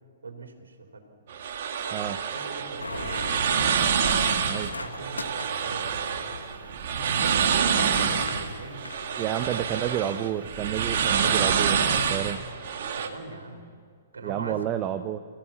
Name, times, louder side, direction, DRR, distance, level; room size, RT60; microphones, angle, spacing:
voice 1, 0.2-1.0 1.9-3.1 4.3-6.7 7.0-9.4 9.8-10.1 12.7-13.7 14.1-14.7, right 3 dB, 75° right, 5 dB, 3.9 m, -42 dB
sound 1, 1.3-13.1, right 7 dB, 55° right, 2.3 m, -27 dB
voice 2, 1.9-2.2 4.5-4.7 9.2-12.4 14.2-15.2, right 11 dB, 30° right, 10 dB, 0.9 m, -30 dB
sound 2, 2.8-11.5, left 3 dB, 85° left, 1.5 m, -41 dB
29.5 x 16.5 x 7.4 m, 2.2 s
figure-of-eight pair, 120°, 0 cm